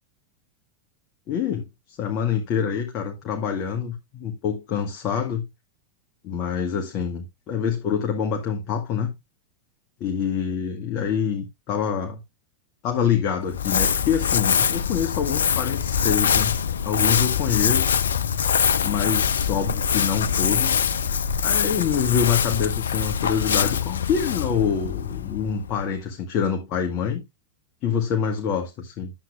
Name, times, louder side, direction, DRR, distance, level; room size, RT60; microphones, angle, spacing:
voice 1, 1.3-5.4 6.2-9.1 10.0-12.2 12.8-16.6 16.8-18.0 18.8-20.8 21.4-27.2 27.8-29.1, left 7 dB, 40° left, 1.4 m, -26 dB
Crumpling crinkling, 13.4-25.9, left 7 dB, 65° left, 0.6 m, -23 dB
10.5 x 7.8 x 2.4 m
figure-of-eight pair, 90°, 0 cm